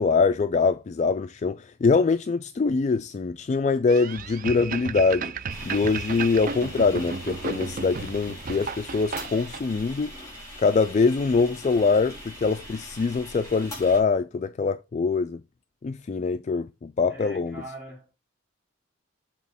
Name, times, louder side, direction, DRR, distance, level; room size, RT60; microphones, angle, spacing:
voice 1, 0.0-5.3 5.6-10.2 10.6-15.4 15.8-17.6, left 4 dB, 35° left, 0.3 m, -24 dB
sound 1, 3.9-9.6, right 5 dB, 40° right, 0.5 m, -34 dB
sound 2, 5.5-14.0, left 1 dB, 15° left, 4.2 m, -42 dB
voice 2, 17.1-18.2, right 1 dB, 10° right, 4.1 m, -42 dB
7.3 x 4.3 x 4.1 m
head